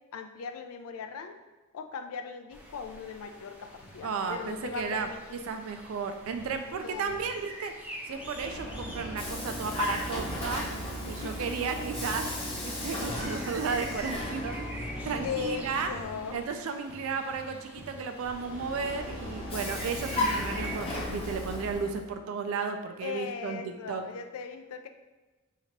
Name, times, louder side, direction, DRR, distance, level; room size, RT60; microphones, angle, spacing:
voice 1, 0.1-1.4 1.7-5.5 6.7-7.3 11.0-11.8 15.2-16.5 23.0-24.9, left 6 dB, 90° left, 7 dB, 0.4 m, -39 dB
sound 1, 2.5-20.7, right 1 dB, 5° right, 0.5 m, -47 dB
sound 2, 3.8-4.3 4.6-5.1 6.3-7.3 8.6-9.5 9.8-12.8 13.8-14.0 14.5-14.8 15.2-15.4 15.9-16.1 16.9-18.3 18.6-20.5, left 1 dB, 70° left, 0.8 m, -50 dB
voice 2, 4.0-5.1 5.5-7.7 8.1-10.7 11.0-12.3 12.6-15.9 16.3-23.6 23.9-24.1, right 5 dB, 70° right, 6 dB, 0.3 m, -34 dB
Vehicle, 8.0-16.5 18.2-22.1, left 1 dB, 25° left, 0.7 m, -35 dB
2.9 x 2.8 x 4.4 m, 1.2 s
head